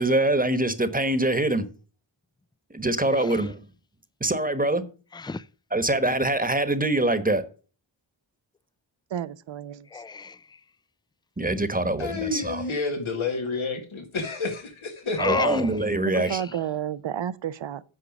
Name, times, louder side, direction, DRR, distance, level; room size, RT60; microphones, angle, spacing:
voice 1, 0.0-1.7 2.7-3.6 4.2-4.8 5.7-7.4 11.4-12.6 15.2-16.4, right 1 dB, 20° right, 1.2 m, -24 dB
voice 2, 3.0-3.5 5.1-5.5 9.9-10.6 15.2-15.7 16.1-16.6, left 4 dB, 10° left, 0.4 m, -32 dB
voice 3, 9.1-9.9 16.0-17.8, right 9 dB, 70° right, 0.7 m, -31 dB
voice 4, 12.0-15.2, left 3 dB, 80° left, 1.8 m, -30 dB
8.8 x 5.0 x 6.5 m
cardioid pair, 45°, 47 cm